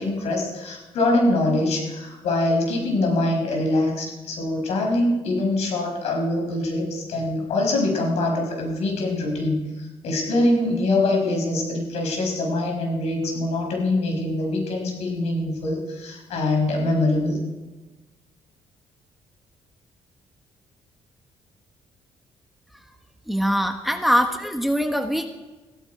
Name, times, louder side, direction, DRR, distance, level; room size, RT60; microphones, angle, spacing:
voice 1, 0.0-17.4, left 2 dB, 75° left, 1 dB, 5.4 m, -24 dB
voice 2, 23.3-25.3, equal, ahead, 6 dB, 1.1 m, -22 dB
16.0 x 13.5 x 4.8 m, 1.2 s
cardioid pair, 110°, 11 cm